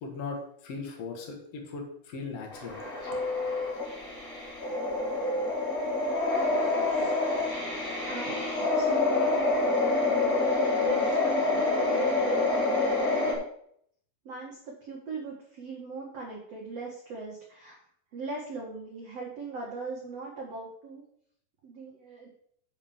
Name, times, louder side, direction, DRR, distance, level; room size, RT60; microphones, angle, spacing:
voice 1, 0.0-2.8, left 4 dB, 75° left, 2 dB, 1.4 m, -38 dB
sound 1, 2.5-13.3, left 3 dB, 25° left, 2.0 m, -27 dB
voice 2, 6.5-6.9 8.1-13.4 14.2-17.8 18.1-21.0 21.6-22.3, right 4 dB, 75° right, -2 dB, 1.5 m, -40 dB
7.2 x 5.4 x 7.2 m, 0.68 s
omnidirectional pair, 5.4 m